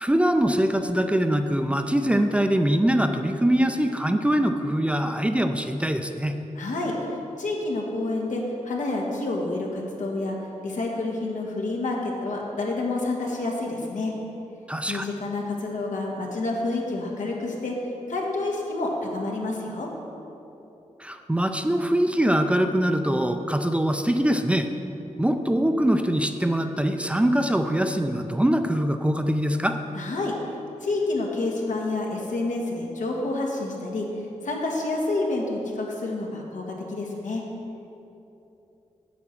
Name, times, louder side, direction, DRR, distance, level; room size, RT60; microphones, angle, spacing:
voice 1, 0.0-6.3 14.7-15.1 21.0-24.7 25.2-29.8, right 1 dB, 10° right, 7 dB, 0.4 m, -23 dB
voice 2, 6.5-6.9 7.4-10.3 10.6-14.1 14.9-17.7 18.1-19.9 29.9-30.3 30.8-34.1 34.4-37.4, left 2 dB, 90° left, -1 dB, 1.5 m, -28 dB
8.1 x 7.6 x 5.9 m, 2.9 s
wide cardioid pair, 135°, 13 cm